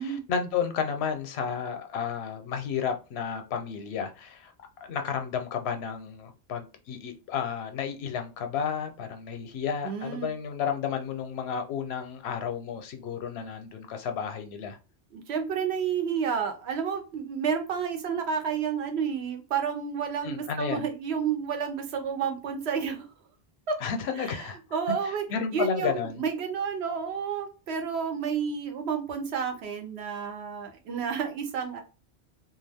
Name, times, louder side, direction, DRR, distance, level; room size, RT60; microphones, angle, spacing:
voice 1, 0.0-4.5 4.8-14.8 20.2-20.9 23.8-24.6 25.3-26.2, left 7 dB, 85° left, 0.8 m, -32 dB
voice 2, 9.8-10.3 15.1-23.1 23.7-23.8 24.2-25.2 25.5-31.8, right 6 dB, 85° right, 0.9 m, -30 dB
2.3 x 2.3 x 3.4 m
omnidirectional pair, 1.1 m